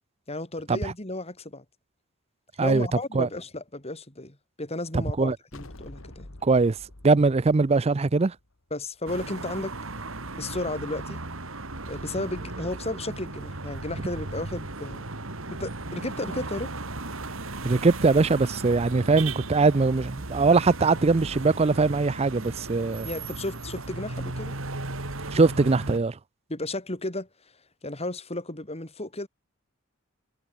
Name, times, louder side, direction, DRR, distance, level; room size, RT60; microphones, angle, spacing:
voice 1, 0.3-1.6 2.6-6.3 8.7-9.8 10.4-11.2 11.9-15.1 15.5-16.7 23.0-24.6 26.5-27.3 27.8-29.3, left 2 dB, 30° left, 3.9 m, -33 dB
voice 2, 4.9-5.4 6.4-6.8 7.0-8.3 17.6-23.1 25.3-26.2, right 3 dB, 30° right, 0.5 m, -21 dB
sound 1, 5.5-9.0, left 1 dB, 70° left, 2.2 m, -47 dB
sound 2, 9.1-26.0, right 2 dB, 70° right, 2.8 m, -36 dB
head